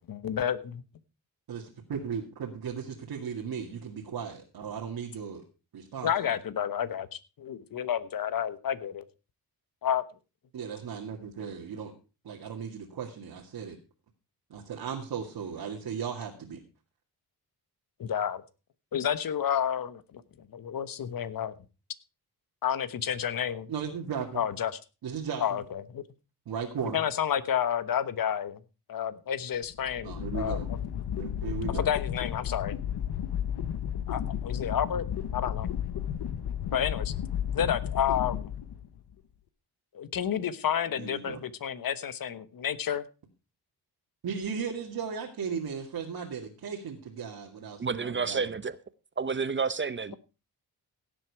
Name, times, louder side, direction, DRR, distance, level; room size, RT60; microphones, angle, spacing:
voice 1, 0.1-0.8 6.0-9.0 9.8-10.0 18.0-18.4 18.9-21.5 22.6-23.7 24.3-24.7 25.4-26.0 26.9-28.6 28.9-30.6 31.7-32.7 34.1-35.1 35.3-35.7 36.7-37.1 37.5-38.5 39.9-43.0, left 9 dB, 60° left, 1.2 m, -30 dB
voice 2, 1.5-5.4 5.7-6.1 10.5-11.9 12.2-13.8 14.5-16.6 23.7-24.4 25.0-25.6 26.5-27.0 30.0-30.7 31.2-31.9 40.9-41.4 44.2-48.5, right 6 dB, 70° right, 2.3 m, -36 dB
sound 1, 29.6-39.1, left 9 dB, 90° left, 1.0 m, -33 dB
voice 3, 47.8-48.8 49.2-50.2, right 5 dB, 30° right, 0.8 m, -30 dB
17.0 x 7.9 x 4.7 m
cardioid pair, 110°, 39 cm